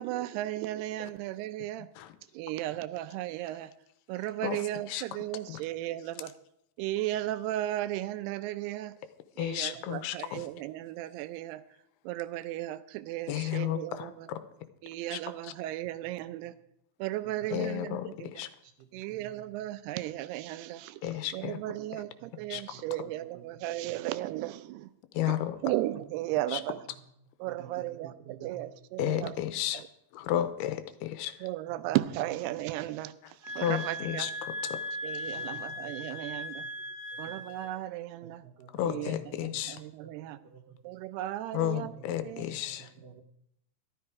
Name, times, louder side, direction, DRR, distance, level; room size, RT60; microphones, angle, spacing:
voice 1, 0.0-1.9 2.3-3.7 4.1-6.3 6.8-8.9 9.4-11.6 12.1-14.1 14.8-16.5 17.0-18.3 18.9-21.0 21.3-24.9 25.3-25.4 25.6-26.8 27.4-29.3 31.4-33.1 33.5-34.3 35.0-36.6 37.2-38.4 38.9-39.2 39.4-40.4 40.8-41.9 42.3-42.4, right 15 dB, 85° right, 14 dB, 2.7 m, -35 dB
voice 2, 4.4-5.0 5.5-5.6 9.4-10.5 13.3-14.4 15.1-15.5 17.5-18.5 21.0-21.6 21.9-22.0 22.5-22.8 25.1-25.6 26.5-26.6 29.0-29.8 30.1-31.5 33.2-33.3 33.6-34.8 38.7-39.8 41.5-42.9, left 12 dB, 85° left, 11 dB, 2.8 m, -33 dB
voice 3, 18.6-19.4 21.7-21.8 22.2-23.4 23.9-24.0 26.9-27.0 27.5-28.7 31.7-32.0 32.8-32.9 35.3-36.2 36.6-36.7 37.1-37.5 38.2-39.1 39.5-39.6 40.0-40.1 40.4-41.0 41.8-43.2, right 8 dB, 70° right, 6 dB, 2.3 m, -51 dB
sound 1, 33.4-37.7, left 1 dB, 10° right, 0.7 m, -38 dB
13.0 x 12.5 x 4.7 m, 0.78 s
omnidirectional pair, 4.6 m